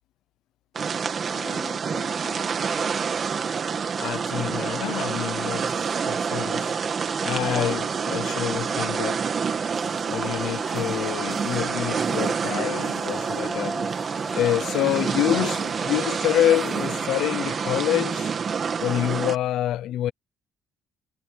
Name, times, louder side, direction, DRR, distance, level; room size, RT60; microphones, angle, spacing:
sound 1, 0.7-19.4, right 6 dB, 30° right, 1.9 m, -27 dB
voice 1, 1.3-2.6 15.3-15.9, left 6 dB, 30° left, 3.3 m, -42 dB
voice 2, 4.0-6.8 7.2-9.3 10.0-13.8 14.3-15.6 15.8-18.3 18.8-20.1, left 13 dB, 65° left, 0.6 m, -27 dB
sound 2, 9.5-17.1, equal, ahead, 2.7 m, -40 dB
cardioid pair, 180°, 0 cm